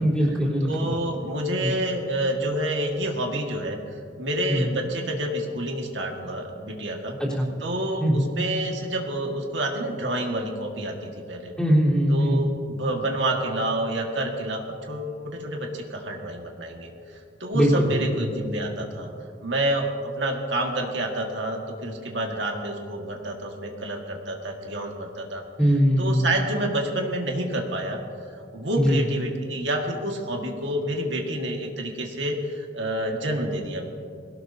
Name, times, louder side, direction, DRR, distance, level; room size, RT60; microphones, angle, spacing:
voice 1, 0.0-0.9 1.6-1.7 4.5-4.7 7.2-7.5 8.0-8.3 11.6-12.4 17.5-18.0 25.6-26.3 28.8-29.0, equal, 5° left, -7 dB, 3.8 m, -21 dB
voice 2, 0.6-7.2 7.6-11.5 12.1-19.1 19.4-25.4 26.0-28.0 28.5-33.9, right 1 dB, 85° right, 1 dB, 1.9 m, -28 dB
21.5 x 18.0 x 2.8 m, 2.4 s
head